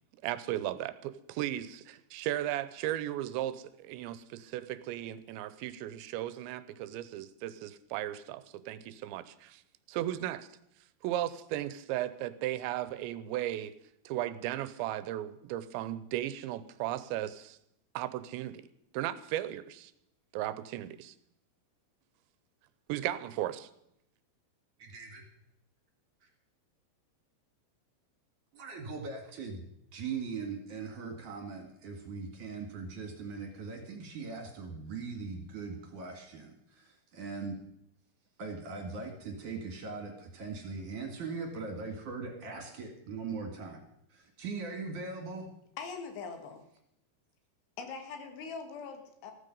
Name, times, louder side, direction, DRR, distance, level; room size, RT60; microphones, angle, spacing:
voice 1, 0.2-9.6 9.9-10.5 11.0-13.7 14.1-17.6 18.0-18.6 18.9-19.9 20.3-21.1 22.9-23.7, right 13 dB, 80° right, 15 dB, 3.0 m, -36 dB
voice 2, 24.8-25.2 26.2-26.3 28.5-29.7 29.9-37.6 38.4-43.8 44.1-45.5, right 4 dB, 55° right, 3 dB, 2.9 m, -40 dB
voice 3, 45.8-46.6 47.8-49.3, left 5 dB, 85° left, 6 dB, 4.4 m, -42 dB
15.5 x 14.0 x 5.4 m, 0.75 s
omnidirectional pair, 5.2 m